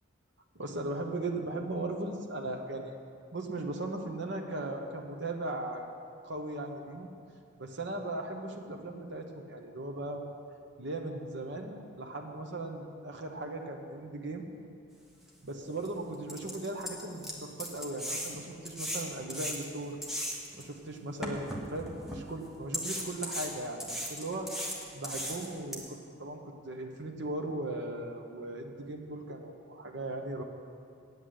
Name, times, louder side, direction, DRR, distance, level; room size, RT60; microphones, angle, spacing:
voice 1, 0.5-2.9 3.3-5.8 6.2-7.1 7.6-10.2 10.8-14.4 15.4-20.0 20.6-24.5 24.9-30.4, right 2 dB, 55° right, 2 dB, 1.1 m, -38 dB
sound 1, 15.3-15.4 15.8-15.9 16.3-20.6 21.2-22.2 22.7-25.8, equal, ahead, 1.2 m, -37 dB
9.1 x 8.3 x 7.8 m, 2.5 s
head